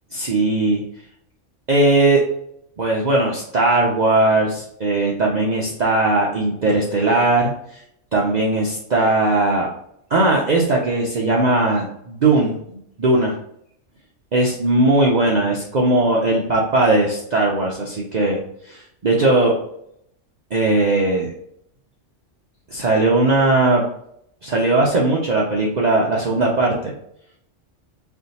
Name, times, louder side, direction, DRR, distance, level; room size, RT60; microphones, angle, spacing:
voice 1, 0.1-0.8 1.7-2.2 2.8-7.5 8.1-9.7 10.1-13.3 14.3-18.4 18.7-19.5 20.5-21.3 22.7-23.8 24.4-26.9, right 2 dB, 45° right, -3 dB, 0.6 m, -18 dB
3.4 x 2.7 x 3.9 m, 0.73 s
omnidirectional pair, 1.3 m